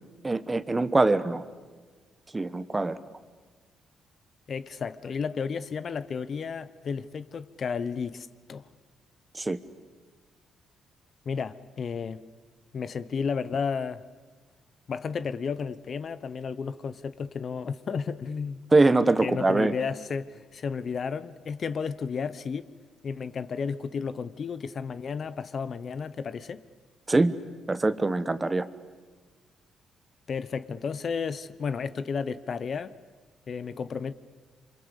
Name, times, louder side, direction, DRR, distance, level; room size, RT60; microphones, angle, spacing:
voice 1, 0.2-1.4 2.3-3.0 9.3-9.6 18.7-19.8 27.1-27.3 27.7-28.7, right 2 dB, 20° right, 1.2 m, -23 dB
voice 2, 4.5-8.7 11.3-12.3 12.7-14.0 14.9-18.6 19.2-22.7 23.0-26.6 30.3-32.9 33.5-34.1, left 6 dB, 50° left, 0.9 m, -32 dB
27.0 x 25.0 x 8.3 m
cardioid pair, 90°, 0 cm